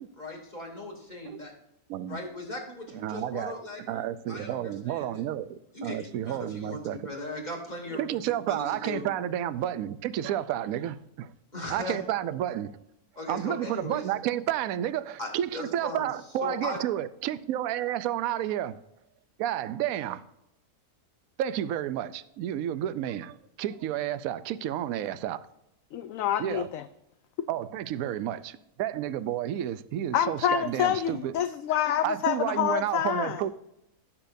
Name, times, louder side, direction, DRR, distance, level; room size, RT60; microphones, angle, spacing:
voice 1, 0.2-1.5 2.1-5.2 5.7-8.2 8.5-9.0 11.5-12.0 13.2-14.0 15.2-16.1 16.4-16.8, left 1 dB, 30° left, 2.9 m, -38 dB
voice 2, 2.9-3.5 3.9-7.0 7.9-11.3 11.7-12.7 13.3-18.8 19.4-20.2 21.4-25.4 26.4-26.7 27.5-31.3 32.0-33.5, right 11 dB, 70° right, 1.0 m, -31 dB
voice 3, 25.9-26.8 30.1-33.4, left 10 dB, 70° left, 0.9 m, -27 dB
16.5 x 7.4 x 2.6 m
omnidirectional pair, 1.6 m